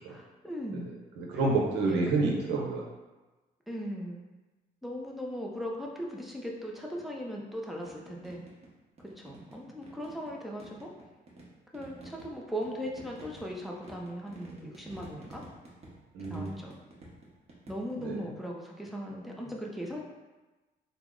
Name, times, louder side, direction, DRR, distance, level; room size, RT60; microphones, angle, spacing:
voice 1, 0.1-0.9 3.7-4.2 4.8-8.4 9.2-10.9 11.7-15.4 16.3-16.8 17.7-20.0, equal, ahead, -1 dB, 0.5 m, -38 dB
voice 2, 1.2-2.8 16.1-16.7 18.0-18.3, right 3 dB, 90° right, -1 dB, 0.7 m, -29 dB
sound 1, 7.8-8.7 9.0-10.3 10.6-18.2, right 1 dB, 35° right, 0.9 m, -50 dB
3.4 x 2.0 x 3.6 m, 1.2 s
cardioid pair, 120°, 17 cm